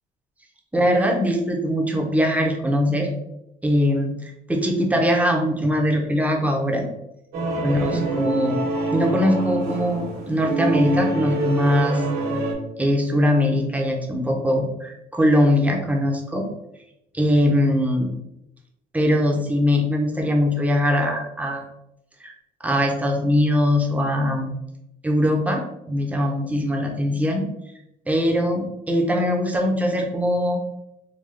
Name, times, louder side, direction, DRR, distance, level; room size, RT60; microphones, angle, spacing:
voice 1, 0.7-3.1 3.6-6.8 7.6-8.6 8.9-12.0 12.8-16.5 17.1-18.1 18.9-21.6 22.2-22.3 22.6-24.5 25.0-27.4 28.1-30.6, equal, 10° right, 1 dB, 0.6 m, -21 dB
sound 1, 7.3-12.5, right 2 dB, 80° right, 1.1 m, -25 dB
3.7 x 2.2 x 3.2 m, 0.84 s
cardioid pair, 110°, 17 cm